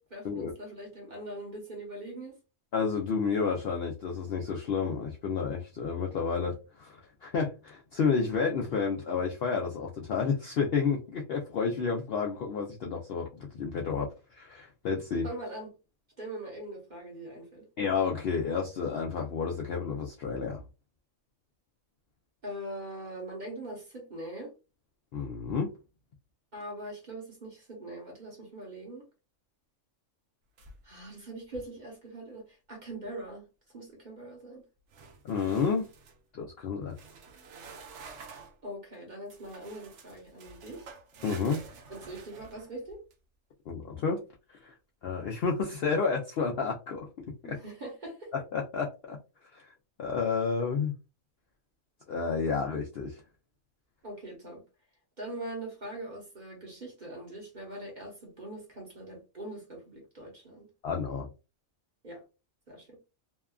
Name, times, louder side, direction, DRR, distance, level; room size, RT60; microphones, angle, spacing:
voice 1, 0.0-2.4 15.2-15.7 16.2-17.7 22.4-24.5 26.5-29.1 30.8-34.6 38.6-40.9 41.9-43.0 47.4-48.3 54.0-54.6 55.2-60.7 62.0-62.2 62.7-63.0, right 1 dB, 40° right, 0.9 m, -42 dB
voice 2, 2.7-15.3 17.8-20.6 25.1-25.7 35.2-35.9 36.3-36.9 41.2-41.6 43.7-44.2 44.5-44.7 45.0-47.1 47.4-47.6 48.3-49.2 49.5-49.7 50.0-50.9 52.1-53.2 60.8-61.3, left 5 dB, 65° left, 0.6 m, -30 dB
sound 1, 30.6-31.1 31.4-31.8 34.9-36.2 36.9-38.6 39.3-43.1, right 4 dB, 65° right, 0.8 m, -50 dB
2.8 x 2.3 x 2.3 m
omnidirectional pair, 1.4 m